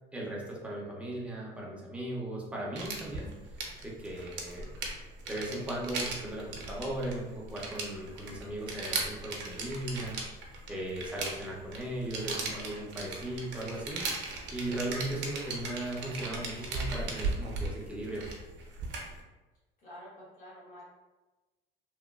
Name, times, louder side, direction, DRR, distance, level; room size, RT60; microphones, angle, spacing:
voice 1, 0.1-3.3 4.0-4.7 5.3-10.2 10.7-14.0 14.5-18.3, right 1 dB, 5° right, -4 dB, 0.5 m, -37 dB
sound 1, 2.8-19.2, right 3 dB, 65° right, 0.6 m, -38 dB
voice 2, 19.8-20.8, left 1 dB, 45° left, -8 dB, 1.0 m, -49 dB
2.9 x 2.2 x 2.2 m, 1.1 s
cardioid pair, 160°, 20 cm